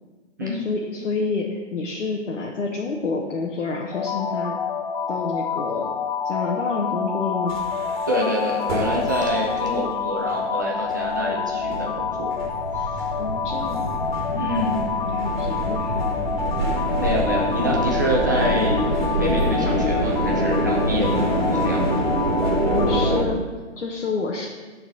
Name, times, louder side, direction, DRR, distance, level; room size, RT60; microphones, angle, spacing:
voice 1, 0.4-4.6 5.1-5.9 6.2-7.6 13.2-13.8 14.3-14.8 15.1-16.2 22.7-23.4 23.8-24.5, left 4 dB, 90° left, -1 dB, 1.1 m, -28 dB
sound 1, 3.9-23.2, left 6 dB, 45° left, 0.4 m, -28 dB
sound 2, 7.5-9.8 10.3-10.4 10.9-23.3, right 1 dB, 40° right, 1.6 m, -25 dB
voice 2, 8.1-12.3 12.7-13.1 14.3-14.7 17.0-21.9, equal, 15° right, -3 dB, 0.5 m, -26 dB
9.0 x 3.9 x 5.9 m, 1.3 s
hypercardioid pair, 165°, 36 cm